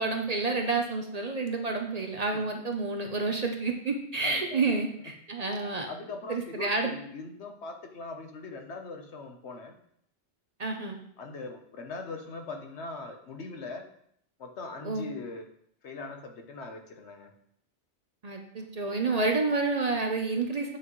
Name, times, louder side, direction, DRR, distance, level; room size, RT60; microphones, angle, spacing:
voice 1, 0.0-5.9 6.3-6.9 10.6-11.0 14.8-15.1 18.2-20.8, right 3 dB, 40° right, 3 dB, 0.7 m, -29 dB
voice 2, 4.2-4.8 5.9-9.7 11.2-13.9 14.4-15.4 15.8-17.3, left 3 dB, 75° left, 4 dB, 1.2 m, -41 dB
8.2 x 5.8 x 3.1 m, 0.70 s
omnidirectional pair, 1.2 m